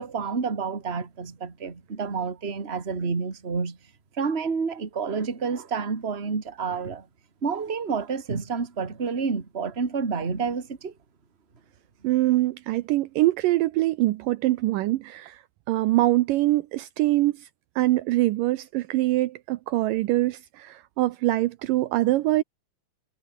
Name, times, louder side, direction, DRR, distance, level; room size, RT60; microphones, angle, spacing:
voice 1, 0.0-3.8 4.1-7.1 7.4-10.9, right 5 dB, 20° right, 2.1 m, -29 dB
voice 2, 12.0-15.4 15.7-17.3 17.8-22.4, right 17 dB, 75° right, 2.3 m, -23 dB
omnidirectional pair, 4.1 m